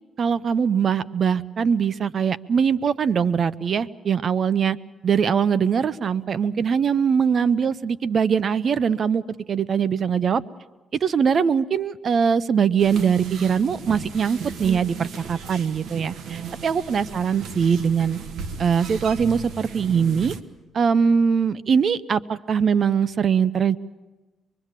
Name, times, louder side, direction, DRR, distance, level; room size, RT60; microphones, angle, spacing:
voice 1, 0.2-4.8 5.0-9.2 9.5-10.4 11.0-18.2 18.6-20.3 20.7-23.8, right 6 dB, 50° right, 17 dB, 0.8 m, -22 dB
sound 1, 12.8-20.4, right 6 dB, 70° right, 1.4 m, -36 dB
24.5 x 22.0 x 7.5 m, 1.2 s
cardioid pair, 90°, 0 cm